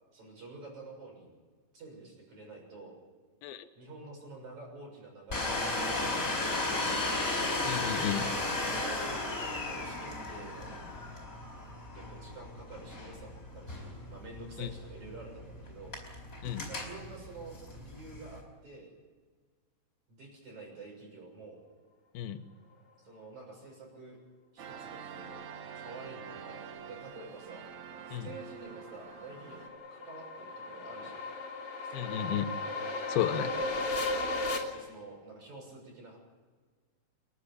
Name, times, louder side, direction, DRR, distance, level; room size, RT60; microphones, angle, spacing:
voice 1, 0.1-1.3 1.7-3.0 3.8-6.8 8.6-9.1 9.4-10.8 11.9-16.0 16.7-18.9 20.1-21.7 23.0-24.2 24.5-25.4 25.7-27.6 28.1-31.2 32.0-32.4 34.7-36.2, right 3 dB, 40° right, 0 dB, 7.8 m, -48 dB
Domestic sounds home sounds, 5.3-18.4, left 2 dB, 20° left, 4.6 m, -35 dB
voice 2, 7.7-8.3 14.6-14.7 16.4-16.7 22.1-22.4 28.1-28.3 31.9-32.5 33.1-33.5, left 10 dB, 70° left, 7 dB, 2.5 m, -33 dB
sound 1, 24.6-29.7, right 7 dB, 75° right, 1.7 m, -46 dB
sound 2, 28.0-34.6, left 2 dB, 35° left, 3.4 m, -36 dB
28.5 x 11.0 x 9.9 m, 1.5 s
omnidirectional pair, 5.4 m